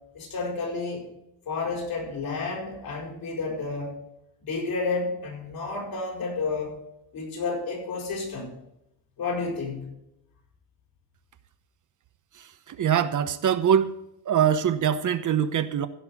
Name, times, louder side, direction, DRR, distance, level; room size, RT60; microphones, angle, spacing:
voice 1, 0.1-1.1 1.5-4.0 4.4-6.7 7.1-8.5 9.2-9.9, left 4 dB, 70° left, -2 dB, 6.7 m, -31 dB
voice 2, 12.7-13.9 14.3-15.9, right 9 dB, 50° right, 11 dB, 1.0 m, -23 dB
16.0 x 5.7 x 8.3 m, 0.83 s
cardioid pair, 110°, 38 cm